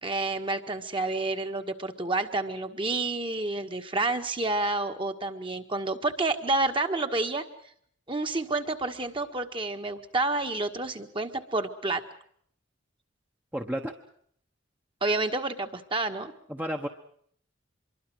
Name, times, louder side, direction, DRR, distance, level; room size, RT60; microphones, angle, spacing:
voice 1, 0.0-7.5 8.1-12.0 15.0-16.3, right 2 dB, 25° right, 6 dB, 1.7 m, -29 dB
voice 2, 13.5-13.9 16.5-16.9, equal, 10° right, 3 dB, 1.2 m, -31 dB
25.5 x 23.0 x 6.4 m, 0.63 s
head